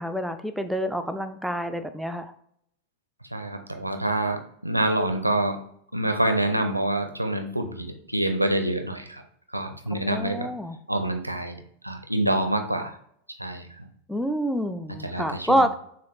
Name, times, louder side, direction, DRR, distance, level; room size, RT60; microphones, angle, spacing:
voice 1, 0.0-2.3 9.9-10.8 14.1-15.7, equal, ahead, 7 dB, 0.4 m, -27 dB
voice 2, 3.3-5.6 5.9-9.2 9.5-10.5 10.9-11.6 11.8-12.9 13.4-13.9 15.0-15.6, right 1 dB, 85° right, 5 dB, 0.5 m, -26 dB
6.9 x 2.3 x 3.1 m, 0.68 s
figure-of-eight pair, 90°, 0 cm